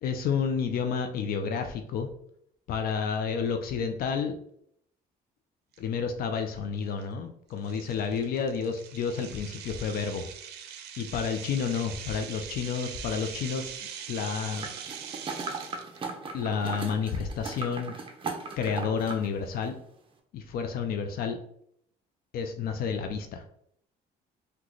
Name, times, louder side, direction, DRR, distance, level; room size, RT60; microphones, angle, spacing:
voice 1, 0.0-2.1 2.7-4.4 5.8-10.3 11.0-13.7 14.1-14.7 16.3-17.9 18.6-19.7 20.3-21.4 22.3-23.4, left 6 dB, 60° left, 6 dB, 0.4 m, -30 dB
sound 1, 5.7-5.8 6.4-6.6 7.0-7.1 7.6-16.0, right 8 dB, 75° right, 0.5 m, -42 dB
sound 2, 14.6-19.3 19.6-19.7, right 4 dB, 30° right, 0.6 m, -37 dB
3.8 x 2.2 x 3.0 m, 0.70 s
cardioid pair, 110°, 17 cm